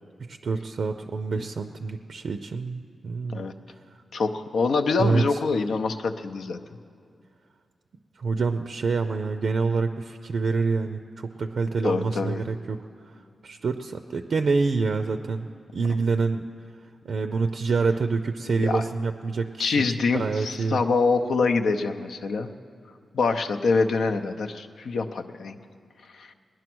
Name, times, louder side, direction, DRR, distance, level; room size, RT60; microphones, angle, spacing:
voice 1, 0.2-3.5 5.0-5.4 8.2-12.8 13.1-13.2 13.4-15.5 15.7-16.4 17.1-19.8 20.1-20.8, right 4 dB, 55° right, 8 dB, 0.5 m, -26 dB
voice 2, 4.1-6.6 11.8-12.4 18.5-18.8 19.6-22.5 23.1-25.6 26.1-26.3, left 4 dB, 70° left, 7 dB, 0.7 m, -25 dB
19.5 x 10.5 x 6.1 m, 2.4 s
wide cardioid pair, 160°, 0 cm